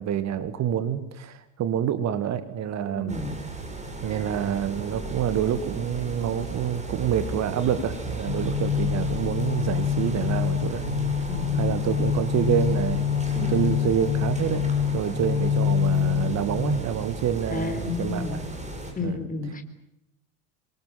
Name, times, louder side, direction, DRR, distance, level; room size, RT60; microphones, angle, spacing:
voice 1, 0.0-3.2 4.0-10.9 11.5-14.7 14.9-18.4 19.0-19.2, right 9 dB, 40° right, 12 dB, 2.0 m, -27 dB
voice 2, 3.0-3.3 11.3-11.8 13.4-13.6 17.5-18.4 19.0-19.6, left 4 dB, 20° left, 8 dB, 3.9 m, -32 dB
sound 1, 3.1-18.9, right 2 dB, 15° right, 7.5 m, -36 dB
sound 2, 8.3-16.8, left 7 dB, 75° left, 3.2 m, -26 dB
27.0 x 23.0 x 7.6 m, 0.83 s
figure-of-eight pair, 70°, 41 cm